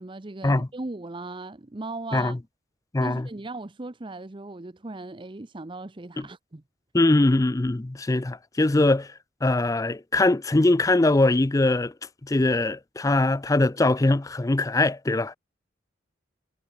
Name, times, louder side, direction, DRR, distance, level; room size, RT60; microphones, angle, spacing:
voice 1, 0.0-2.3 3.0-6.6, right 2 dB, 25° right, 0.7 m, -38 dB
voice 2, 2.9-3.3 6.2-6.3 6.9-9.1 9.4-11.9 12.2-15.4, left 2 dB, 15° left, 0.4 m, -22 dB
head